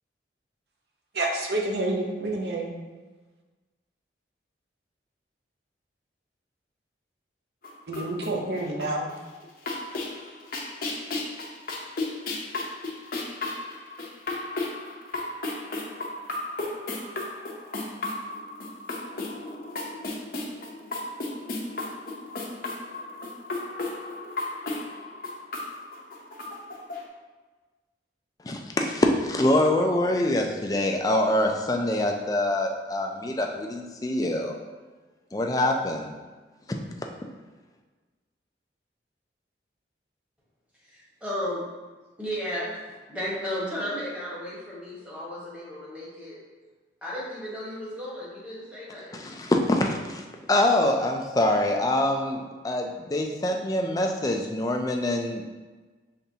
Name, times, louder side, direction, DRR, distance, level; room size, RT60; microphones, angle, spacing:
voice 1, 1.1-2.8 7.9-9.1, right 2 dB, 65° right, 0 dB, 0.7 m, -28 dB
sound 1, 7.6-9.1 9.4-27.0, left 2 dB, 50° left, 0.7 m, -34 dB
voice 2, 28.4-34.6 35.3-36.1 36.7-36.8 49.1-55.5, left 1 dB, 20° left, 2 dB, 0.4 m, -25 dB
voice 3, 40.8-41.6 42.2-46.4 47.0-49.2, equal, 5° right, -8 dB, 1.3 m, -34 dB
5.4 x 3.4 x 2.8 m, 1.3 s
head